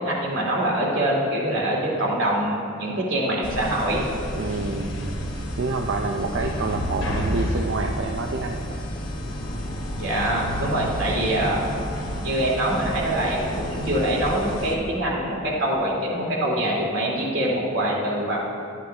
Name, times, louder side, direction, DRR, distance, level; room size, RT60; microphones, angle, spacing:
voice 1, 0.0-4.1 10.0-11.6 12.2-18.4, right 1 dB, 90° right, -4 dB, 2.4 m, -24 dB
sound 1, 3.4-14.7, equal, 70° left, 1.2 m, -30 dB
voice 2, 4.4-8.8, right 3 dB, 70° right, 3 dB, 0.5 m, -28 dB
13.0 x 8.9 x 3.4 m, 2.6 s
head